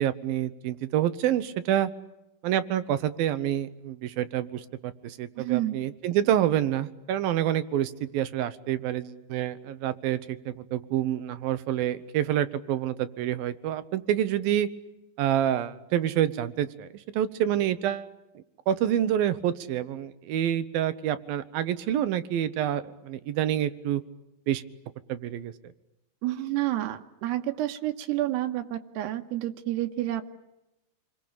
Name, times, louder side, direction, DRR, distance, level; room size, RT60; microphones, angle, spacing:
voice 1, 0.0-1.9 2.4-14.7 15.2-16.9 17.2-18.1 18.7-24.0 24.5-24.6 25.1-25.5, right 11 dB, 70° right, 13 dB, 2.6 m, -27 dB
voice 2, 5.4-5.8 26.2-30.2, right 14 dB, 85° right, 6 dB, 3.3 m, -29 dB
28.5 x 22.5 x 8.8 m, 0.93 s
omnidirectional pair, 4.7 m